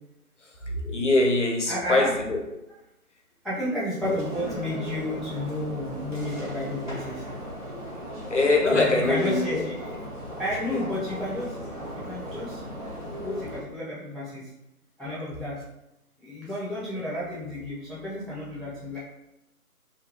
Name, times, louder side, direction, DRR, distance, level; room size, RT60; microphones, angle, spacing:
voice 1, 0.4-2.4 4.0-4.2 8.3-9.7, left 2 dB, 50° left, 1 dB, 0.6 m, -23 dB
voice 2, 1.7-2.1 3.4-7.2 8.7-9.9 10.4-11.5 12.0-12.6 13.2-14.5 15.0-15.6 16.2-19.0, left 1 dB, ahead, -9 dB, 0.4 m, -31 dB
sound 1, 4.0-13.6, equal, 30° right, 0.7 m, -37 dB
2.7 x 2.3 x 2.8 m, 0.91 s
figure-of-eight pair, 155°, 45 cm